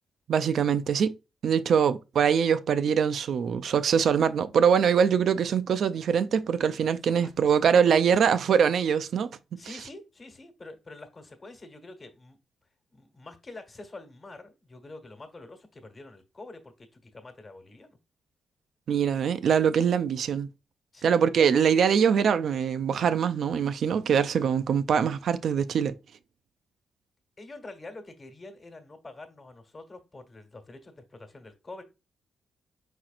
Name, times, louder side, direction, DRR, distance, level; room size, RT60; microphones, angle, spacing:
voice 1, 0.3-1.2 1.4-9.3 18.9-20.5 21.0-26.0, right 7 dB, 65° right, 0.4 m, -23 dB
voice 2, 7.2-7.6 9.6-12.4 12.9-18.0 20.9-21.2 27.4-31.8, left 2 dB, 35° left, 1.2 m, -46 dB
4.8 x 4.4 x 2.4 m
cardioid pair, 75°, 0 cm